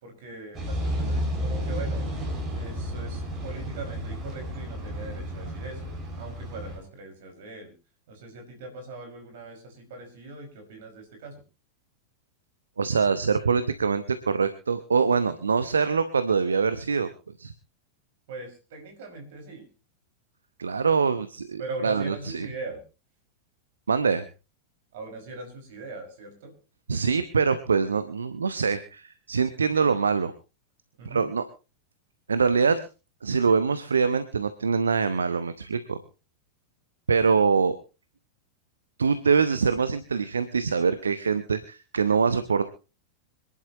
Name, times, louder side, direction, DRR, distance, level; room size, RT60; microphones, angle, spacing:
voice 1, 0.0-2.1 2.5-7.7 8.1-11.4 18.3-19.7 21.6-22.8 24.9-26.5 31.0-31.3, right 3 dB, 55° right, 4 dB, 5.4 m, -40 dB
sound 1, 0.5-6.8, equal, 30° right, 5.9 m, -32 dB
voice 2, 12.8-17.1 17.4-17.5 20.6-22.5 23.9-24.3 26.9-30.3 31.0-31.4 32.3-32.8 33.2-36.0 37.1-37.8 39.0-42.6, right 5 dB, 75° right, 12 dB, 0.9 m, -24 dB
25.5 x 11.5 x 3.0 m, 0.31 s
figure-of-eight pair, 90°, 0 cm